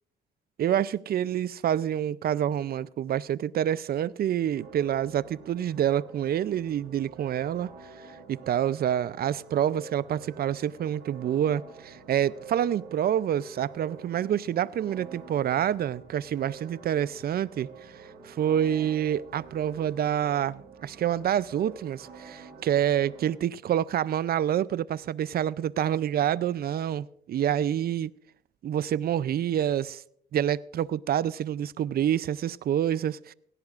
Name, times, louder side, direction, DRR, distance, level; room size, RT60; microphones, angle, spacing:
voice 1, 0.6-7.7 8.0-28.1 28.6-30.0 30.3-33.3, right 10 dB, 50° right, 0.5 m, -27 dB
sound 1, 4.5-23.3, right 5 dB, 90° right, 3.6 m, -48 dB
18.0 x 16.0 x 2.5 m
cardioid pair, 90°, 20 cm